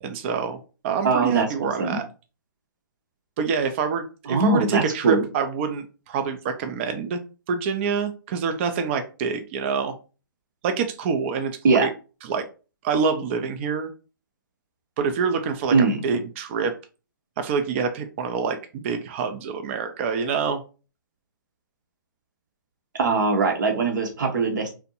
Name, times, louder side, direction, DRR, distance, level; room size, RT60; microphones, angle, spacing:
voice 1, 0.0-0.6 0.8-2.0 3.4-7.2 7.5-10.0 10.6-11.9 12.2-12.4 12.8-13.9 15.0-15.7 16.0-16.8 17.4-20.6, right 5 dB, 35° right, 8 dB, 0.4 m, -26 dB
voice 2, 1.0-2.0 4.3-5.2 11.6-11.9 15.7-16.0 23.0-24.7, right 3 dB, 60° right, 2 dB, 0.8 m, -21 dB
2.5 x 2.1 x 2.8 m, 0.33 s
figure-of-eight pair, 135°, 11 cm